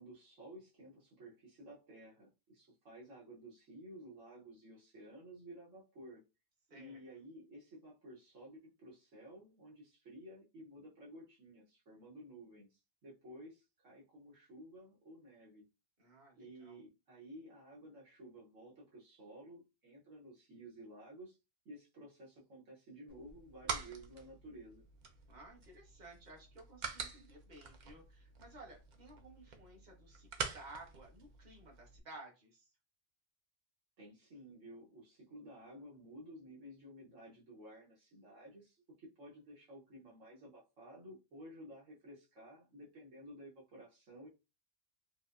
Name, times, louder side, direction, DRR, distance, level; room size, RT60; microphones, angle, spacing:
voice 1, 0.0-6.2 6.7-15.6 16.4-21.4 21.6-24.8 34.0-44.3, right 1 dB, 70° right, -4 dB, 1.4 m, -54 dB
voice 2, 6.7-7.0 16.0-16.8 25.3-32.7, right 2 dB, 35° right, -1 dB, 1.3 m, -55 dB
sound 1, 23.1-32.0, right 5 dB, 55° right, 0.5 m, -46 dB
4.7 x 2.1 x 2.5 m, 0.27 s
omnidirectional pair, 1.3 m